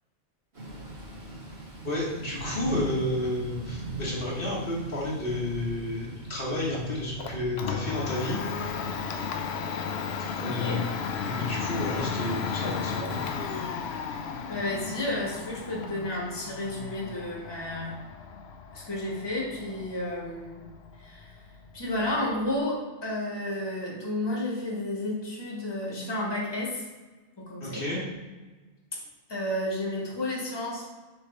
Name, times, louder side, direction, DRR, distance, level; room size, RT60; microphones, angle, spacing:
Thunder / Rain, 0.5-9.4, right 1 dB, 70° right, 2.4 m, -40 dB
voice 1, 1.8-8.4 9.2-9.3 10.4-10.8 11.1-13.1 27.6-28.0, left 1 dB, 55° left, -6 dB, 1.5 m, -31 dB
Domestic sounds home sounds, 6.7-22.6, left 6 dB, 75° left, 0.8 m, -35 dB
voice 2, 10.4-10.9 14.1-14.2 14.5-18.0 18.7-20.6 21.0-21.4 21.7-26.9 27.4-27.8 29.3-30.9, left 1 dB, 25° left, -4 dB, 1.5 m, -32 dB
6.8 x 3.3 x 4.5 m, 1.2 s
omnidirectional pair, 1.1 m